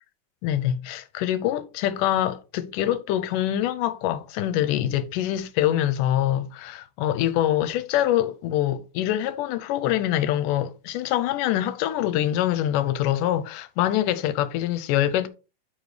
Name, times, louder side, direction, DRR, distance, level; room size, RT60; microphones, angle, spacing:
voice 1, 0.4-15.3, left 12 dB, 80° left, 2.1 m, -24 dB
9.1 x 5.0 x 3.2 m
omnidirectional pair, 3.9 m